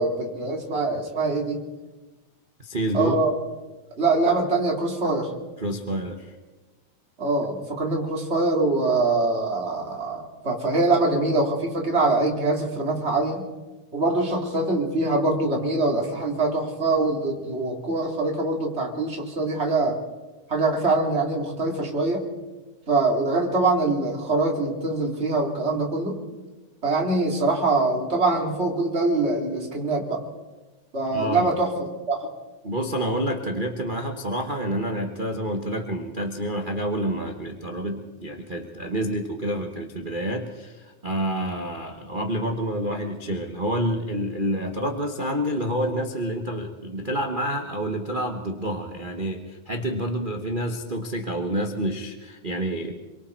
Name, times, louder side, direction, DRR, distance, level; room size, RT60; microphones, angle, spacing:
voice 1, 0.0-1.6 2.9-3.3 4.0-5.3 7.2-13.4 13.9-20.0 20.5-22.2 22.9-26.2 26.8-30.2 30.9-31.7 32.1-32.3, right 2 dB, 20° right, 0 dB, 3.0 m, -23 dB
voice 2, 2.6-3.2 5.6-6.3 31.1-31.5 32.6-53.0, right 1 dB, 75° right, 3 dB, 0.4 m, -28 dB
27.5 x 23.0 x 4.6 m, 1.2 s
omnidirectional pair, 3.5 m